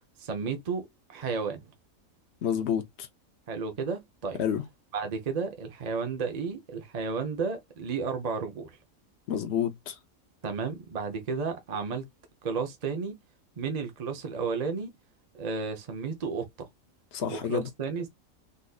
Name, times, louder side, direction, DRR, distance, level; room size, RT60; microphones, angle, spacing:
voice 1, 0.2-1.7 3.5-4.4 4.9-8.8 10.4-12.1 12.4-13.2 13.6-14.9 15.3-16.7 17.3-18.1, right 5 dB, 40° right, 0.6 m, -32 dB
voice 2, 2.4-3.1 4.4-4.6 9.3-10.0 17.1-17.7, left 8 dB, 60° left, 0.9 m, -29 dB
4.0 x 2.5 x 2.3 m
omnidirectional pair, 1.5 m